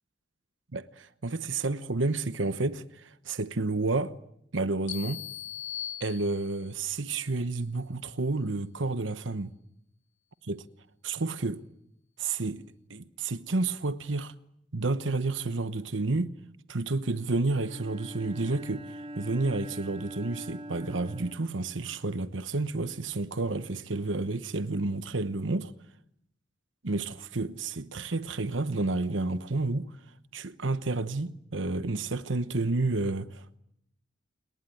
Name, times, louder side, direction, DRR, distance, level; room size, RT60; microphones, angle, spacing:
voice 1, 0.7-4.1 4.5-5.2 6.0-9.5 10.4-10.6 11.0-11.6 12.2-14.3 14.7-16.3 16.7-25.7 26.8-29.9 30.3-33.6, right 3 dB, 90° right, 1.1 m, -30 dB
sound 1, 4.9-6.8, left 11 dB, 70° left, 1.5 m, -39 dB
Bowed string instrument, 17.6-22.2, right 1 dB, 30° right, 3.0 m, -43 dB
29.0 x 20.5 x 9.4 m
head